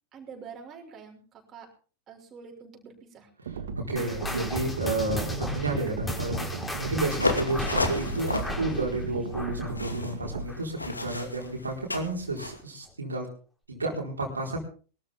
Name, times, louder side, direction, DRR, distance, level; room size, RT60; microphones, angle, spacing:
voice 1, 0.1-1.7 2.1-3.3, right 6 dB, 30° right, 0 dB, 6.1 m, -46 dB
sound 1, 3.5-10.5, right 5 dB, 70° right, 1.9 m, -36 dB
voice 2, 3.8-6.4 6.7-13.3 13.7-14.6, right 2 dB, 85° right, -1 dB, 4.4 m, -31 dB
sound 2, 4.0-10.8 11.1-11.4 12.0-12.1 12.9-13.0, left 1 dB, 10° left, 4.6 m, -35 dB
sound 3, 7.1-12.6, left 2 dB, 90° left, 2.5 m, -33 dB
23.0 x 13.5 x 3.7 m, 0.38 s
figure-of-eight pair, 90°, 0 cm